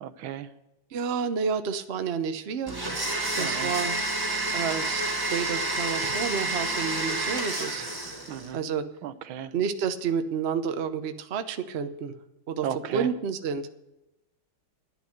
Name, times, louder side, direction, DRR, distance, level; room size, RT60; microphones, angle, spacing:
voice 1, 0.0-0.5 3.4-3.7 8.3-8.6 9.0-9.5 12.6-13.1, right 9 dB, 80° right, 12 dB, 1.6 m, -34 dB
voice 2, 0.9-2.8 3.3-4.0 4.5-5.0 5.3-7.8 8.5-8.9 9.5-12.1 12.5-13.7, right 6 dB, 55° right, 8 dB, 0.7 m, -30 dB
Domestic sounds home sounds, 2.7-8.5, right 2 dB, 10° right, 1.6 m, -29 dB
11.0 x 10.5 x 6.4 m, 0.94 s
omnidirectional pair, 2.2 m